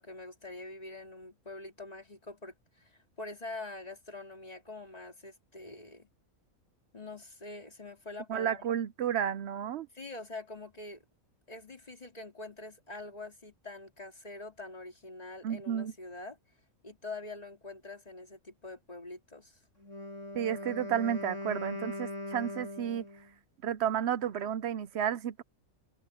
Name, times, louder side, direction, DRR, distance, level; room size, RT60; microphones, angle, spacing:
voice 1, 0.0-6.1 6.9-8.7 9.9-11.0 11.5-16.4 16.8-19.6, left 2 dB, 25° left, 2.4 m, -45 dB
voice 2, 8.3-9.9 15.4-15.9 20.3-23.0 23.6-25.4, right 9 dB, 60° right, 0.7 m, -32 dB
Wind instrument woodwind instrument, 19.8-23.3, left 1 dB, 60° left, 8.4 m, -40 dB
omnidirectional pair, 1.5 m